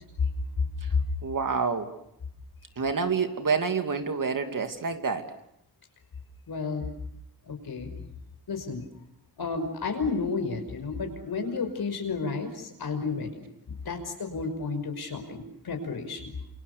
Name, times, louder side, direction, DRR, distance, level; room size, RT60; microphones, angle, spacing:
voice 1, 1.2-1.9 2.8-5.3, right 5 dB, 55° right, 6 dB, 2.7 m, -28 dB
voice 2, 6.5-6.9 7.5-7.9 8.5-8.8 9.4-16.3, left 4 dB, 75° left, 6 dB, 5.6 m, -32 dB
28.5 x 27.5 x 6.8 m, 0.78 s
wide cardioid pair, 115°, 38 cm